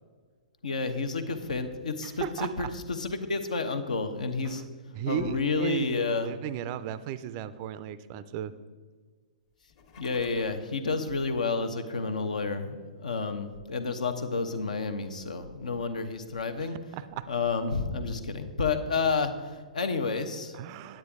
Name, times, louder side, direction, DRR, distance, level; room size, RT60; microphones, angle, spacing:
voice 1, 0.6-4.6 5.1-6.3 10.0-16.8 17.3-20.6, left 4 dB, 70° left, 9 dB, 0.9 m, -30 dB
voice 2, 2.0-2.7 4.4-4.6 4.9-8.5 16.9-17.3 20.5-21.0, right 11 dB, 35° right, 15 dB, 0.4 m, -35 dB
sound 1, 9.6-10.7, left 5 dB, 45° left, 1.5 m, -53 dB
9.6 x 9.0 x 3.6 m, 1.5 s
figure-of-eight pair, 120°, 4 cm